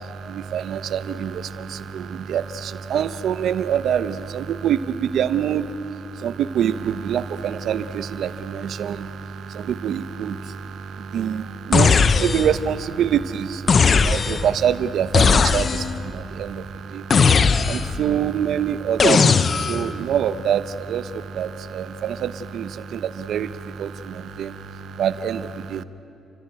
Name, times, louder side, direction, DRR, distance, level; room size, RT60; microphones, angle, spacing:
voice 1, 0.3-5.6 6.2-9.1 9.5-10.6 11.0-13.6 14.0-16.6 16.9-17.0 17.7-23.5 23.8-24.5 25.0-25.8, right 9 dB, 70° right, 13 dB, 0.9 m, -25 dB
sound 1, 11.7-12.6 13.7-14.5 15.1-16.0 17.1-18.0 19.0-19.9, left 5 dB, 45° left, 0.8 m, -18 dB
29.5 x 14.5 x 9.2 m, 2.8 s
cardioid pair, 90°, 0 cm